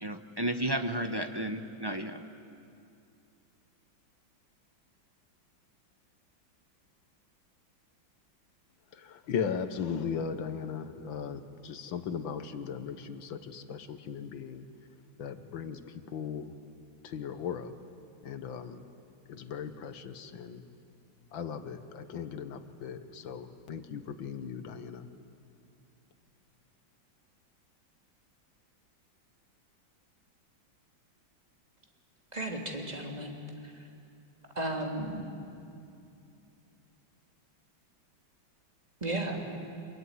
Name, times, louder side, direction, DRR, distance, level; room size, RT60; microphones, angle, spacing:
voice 1, 0.0-2.2, right 1 dB, 35° right, 6 dB, 0.3 m, -32 dB
voice 2, 8.9-14.7 15.2-16.5 17.0-17.7 18.2-18.8 19.3-20.6 21.3-25.1, left 7 dB, 75° left, 9 dB, 1.9 m, -37 dB
voice 3, 32.3-33.4 33.6-33.7 34.5-35.3 39.0-39.4, right 1 dB, 20° right, 0 dB, 3.2 m, -34 dB
26.5 x 22.0 x 9.7 m, 2.6 s
omnidirectional pair, 2.2 m